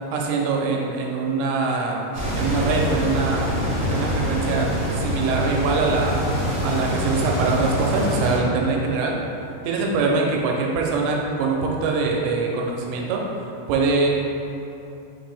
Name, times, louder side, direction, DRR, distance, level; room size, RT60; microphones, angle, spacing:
voice 1, 0.1-2.1 2.4-3.6 3.9-6.2 6.6-9.1 9.6-13.2 13.7-14.1, right 4 dB, 90° right, -1 dB, 2.7 m, -23 dB
sound 1, 2.1-8.4, equal, 70° right, 1.2 m, -25 dB
6.1 x 2.6 x 3.3 m, 2.9 s
omnidirectional pair, 4.8 m